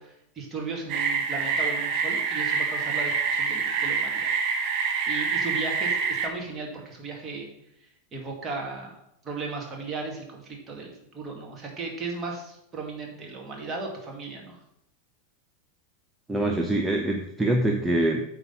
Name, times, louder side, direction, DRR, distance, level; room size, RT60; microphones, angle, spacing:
voice 1, 0.0-4.3 5.1-7.5 8.1-9.0 9.2-14.6, right 3 dB, 25° right, 0 dB, 2.1 m, -36 dB
sound 1, 0.9-6.3, right 5 dB, 45° right, 1.0 m, -26 dB
voice 2, 16.3-18.3, right 1 dB, 5° right, 1 dB, 0.8 m, -24 dB
8.9 x 3.7 x 5.7 m, 0.79 s
figure-of-eight pair, 85°, 0 cm